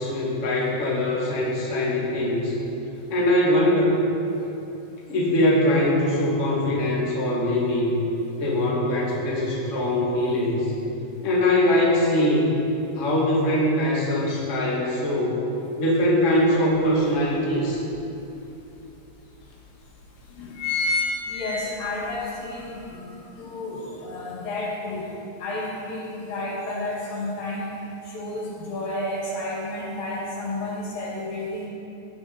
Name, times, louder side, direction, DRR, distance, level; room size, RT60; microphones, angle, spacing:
voice 1, 0.0-2.5 3.1-4.0 5.1-8.0 8.4-10.7 11.2-12.6 12.9-15.4 15.8-17.8, left 1 dB, 40° left, -6 dB, 1.1 m, -22 dB
sound 1, 16.4-16.5 16.9-18.1 18.7-18.8 19.1-19.2 19.9-20.1 20.3-22.2 22.6-22.7, left 3 dB, 85° left, 4.2 m, -27 dB
voice 2, 21.3-25.1 25.4-27.7 28.0-31.7, left 2 dB, 55° left, -5 dB, 3.1 m, -31 dB
16.5 x 9.6 x 4.3 m, 2.9 s
omnidirectional pair, 5.5 m